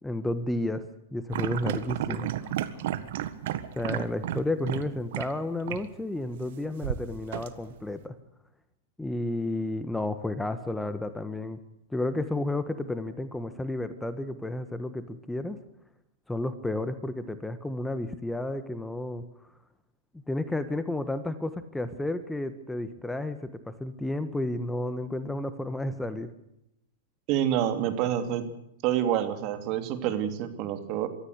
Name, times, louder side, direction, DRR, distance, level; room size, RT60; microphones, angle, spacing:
voice 1, 0.0-2.6 3.7-8.1 9.0-11.6 11.9-15.6 16.3-19.2 20.3-26.3, left 1 dB, 5° left, 11 dB, 1.5 m, -32 dB
sound 1, 1.3-4.9 5.1-5.3 5.7-5.8 6.8-7.9, right 12 dB, 65° right, 1.6 m, -32 dB
voice 2, 27.3-28.5 28.8-31.1, right 10 dB, 45° right, 8 dB, 2.9 m, -27 dB
23.0 x 14.5 x 8.3 m, 0.80 s
hypercardioid pair, 115°, 0 cm